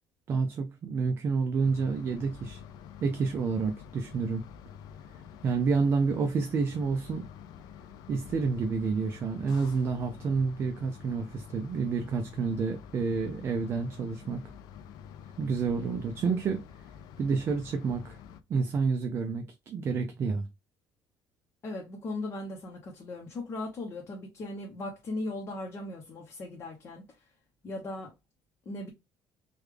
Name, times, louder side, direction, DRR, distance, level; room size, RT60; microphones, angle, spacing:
voice 1, 0.3-2.6 3.0-4.4 5.4-7.3 8.1-14.5 15.4-16.6 17.2-18.2 18.5-20.5, right 5 dB, 30° right, 0.4 m, -29 dB
sound 1, 1.6-18.4, left 8 dB, 60° left, 0.4 m, -48 dB
voice 2, 21.6-27.0 27.6-28.1 28.7-28.9, left 2 dB, 35° left, 0.7 m, -38 dB
3.5 x 2.3 x 3.2 m
cardioid pair, 165°, 8 cm